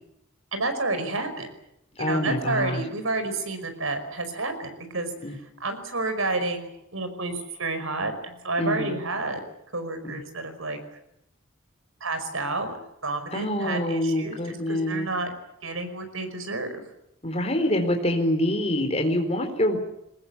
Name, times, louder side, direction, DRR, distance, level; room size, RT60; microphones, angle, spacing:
voice 1, 0.5-1.5 2.0-5.1 5.6-9.4 9.7-10.8 12.0-12.8 13.0-15.3 15.6-16.8, right 2 dB, 80° right, 8 dB, 5.3 m, -30 dB
voice 2, 2.0-2.8 5.2-5.3 8.6-9.0 10.0-10.2 13.3-15.1 17.2-19.8, left 1 dB, 30° left, 4 dB, 4.1 m, -25 dB
23.0 x 20.0 x 9.9 m, 0.80 s
head